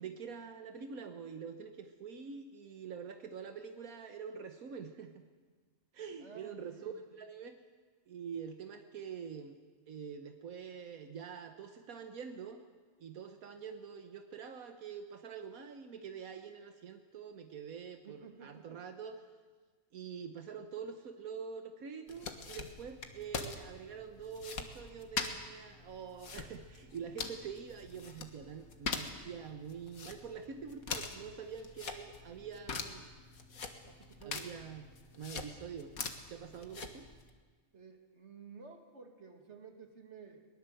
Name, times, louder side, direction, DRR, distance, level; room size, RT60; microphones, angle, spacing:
voice 1, 0.0-5.3 5.9-7.6 8.1-9.6 9.9-12.6 13.0-19.2 19.9-33.1 34.3-34.9 35.1-35.9 36.3-37.1, right 6 dB, 85° right, 6 dB, 1.6 m, -45 dB
voice 2, 6.2-6.9 18.0-18.8 33.8-34.5 36.6-36.9 37.7-40.5, right 5 dB, 55° right, 4 dB, 2.6 m, -53 dB
sound 1, 22.1-37.3, left 4 dB, 90° left, 2.0 m, -44 dB
22.0 x 20.0 x 7.8 m, 1.4 s
omnidirectional pair, 1.4 m